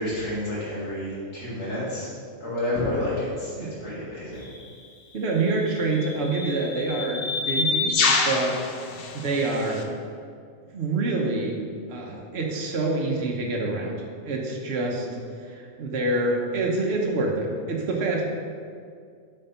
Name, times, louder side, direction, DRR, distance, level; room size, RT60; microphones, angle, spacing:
voice 1, 0.0-2.1 2.4-4.5 14.9-15.1, left 1 dB, 75° left, -10 dB, 2.5 m, -30 dB
sound 1, 4.4-4.6 5.6-9.8, left 4 dB, 50° left, 0.9 m, -27 dB
voice 2, 5.1-8.7 9.1-9.9 10.7-11.6 11.9-14.0 14.2-15.1 15.4-18.2, right 2 dB, 55° right, -1 dB, 1.1 m, -26 dB
9.0 x 4.5 x 5.7 m, 2.2 s
omnidirectional pair, 1.3 m